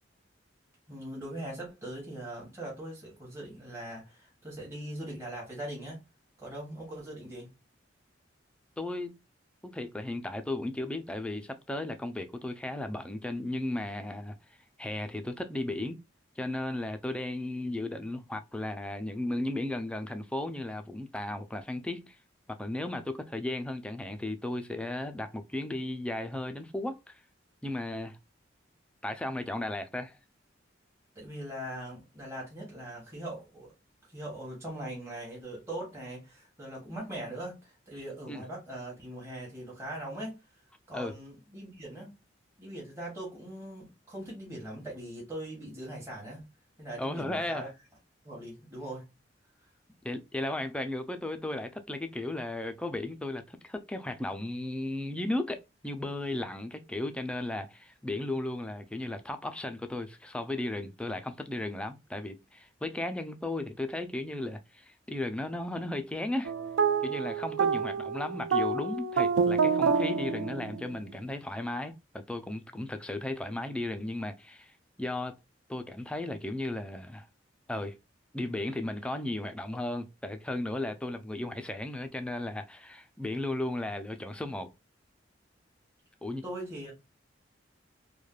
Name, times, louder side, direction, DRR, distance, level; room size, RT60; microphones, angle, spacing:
voice 1, 0.9-6.0 6.4-7.5 31.1-33.7 34.1-40.4 40.9-42.1 42.6-46.4 46.8-47.7 48.2-49.0 86.4-86.9, right 1 dB, 15° right, 1.0 m, -41 dB
voice 2, 8.8-9.2 9.6-14.3 14.8-16.0 16.4-22.2 22.5-27.2 27.6-28.2 29.0-30.2 38.3-38.4 40.9-41.1 47.0-47.7 50.0-66.5 67.0-74.7 75.0-75.4 75.7-77.3 77.7-78.0 78.3-84.7 86.2-86.4, left 1 dB, 5° left, 0.3 m, -35 dB
sound 1, 66.4-71.1, right 5 dB, 75° right, 0.3 m, -28 dB
3.2 x 2.2 x 2.2 m
head